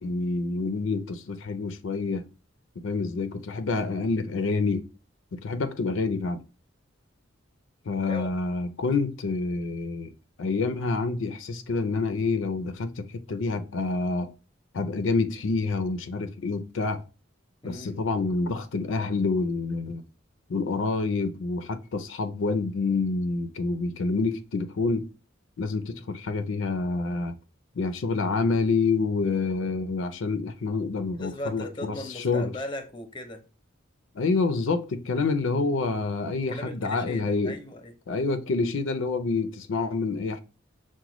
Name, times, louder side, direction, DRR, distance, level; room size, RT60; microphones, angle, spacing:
voice 1, 0.0-2.2 2.8-4.9 5.3-6.4 7.9-10.1 10.4-14.3 14.7-17.0 17.6-20.0 20.5-25.1 25.6-27.3 27.8-32.5 34.1-37.6 38.1-40.4, left 3 dB, 75° left, 0.5 m, -27 dB
voice 2, 17.6-18.0 31.1-33.4 36.5-37.9, left 1 dB, 25° left, 0.6 m, -37 dB
5.9 x 2.2 x 2.9 m
head